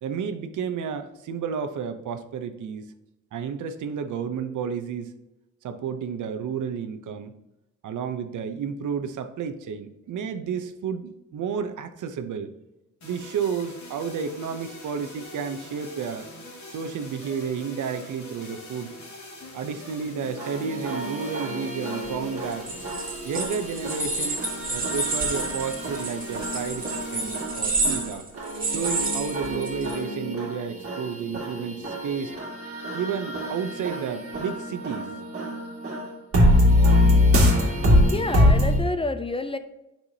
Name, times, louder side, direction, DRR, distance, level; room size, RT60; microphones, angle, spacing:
voice 1, 0.0-2.8 3.3-5.1 5.6-7.3 7.8-12.5 13.0-16.3 16.7-19.0 19.5-22.7 23.2-24.4 24.7-28.3 28.7-32.4 32.9-35.1, right 6 dB, 85° right, 9 dB, 0.8 m, -31 dB
sound 1, 13.0-29.0, left 2 dB, 70° left, 2.5 m, -44 dB
sound 2, 20.4-38.8, left 1 dB, 50° right, 2.1 m, -25 dB
sound 3, 22.5-30.0, right 3 dB, 30° right, 2.3 m, -30 dB
voice 2, 38.1-39.6, left 3 dB, 20° left, 10 dB, 0.4 m, -28 dB
9.8 x 5.8 x 2.9 m, 0.96 s
wide cardioid pair, 130°, 30 cm